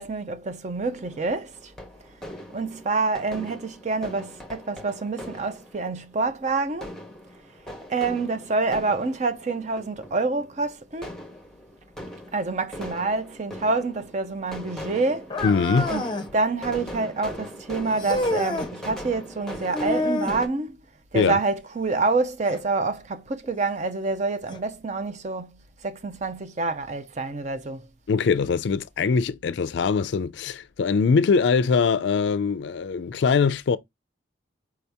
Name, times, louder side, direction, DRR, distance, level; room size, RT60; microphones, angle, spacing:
voice 1, 0.0-1.7 2.5-6.9 7.9-11.1 12.3-15.3 15.9-16.0 16.3-20.8 21.1-27.9, right 3 dB, 35° right, 0.5 m, -27 dB
sound 1, 0.9-20.5, left 1 dB, 5° left, 1.0 m, -40 dB
sound 2, 15.3-16.3 18.0-18.7 19.7-20.4 22.5-22.6 23.4-23.5 24.5-24.6, left 2 dB, 25° left, 0.6 m, -27 dB
voice 2, 15.4-15.9 21.1-21.4 28.1-33.8, left 5 dB, 65° left, 0.4 m, -22 dB
4.6 x 2.8 x 3.4 m
head